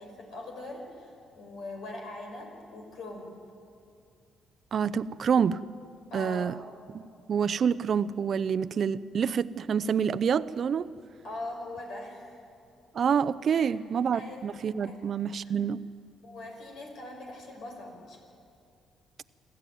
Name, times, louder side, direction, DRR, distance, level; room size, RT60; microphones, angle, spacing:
voice 1, 0.0-3.4 6.1-6.5 11.2-12.4 13.5-13.7 14.1-14.5 14.8-15.1 15.4-15.5 16.2-18.2, left 2 dB, 75° left, 2 dB, 5.7 m, -41 dB
voice 2, 4.7-5.6 6.1-6.5 6.9-10.9 12.9-15.8, right 7 dB, 55° right, 16 dB, 0.6 m, -27 dB
27.0 x 14.0 x 9.3 m, 2.4 s
cardioid pair, 90°, 0 cm